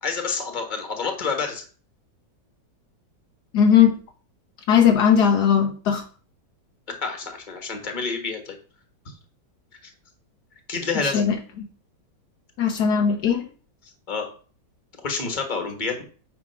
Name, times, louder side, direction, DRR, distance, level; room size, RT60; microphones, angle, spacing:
voice 1, 0.0-1.7 7.0-8.6 9.0-9.1 10.7-11.3 14.1-14.3 15.0-16.0, left 4 dB, 30° left, 5 dB, 1.5 m, -28 dB
voice 2, 3.5-3.9 4.7-6.0 11.0-11.4 12.6-13.5, left 8 dB, 70° left, 5 dB, 1.3 m, -18 dB
9.1 x 3.3 x 5.7 m, 0.39 s
omnidirectional pair, 1.9 m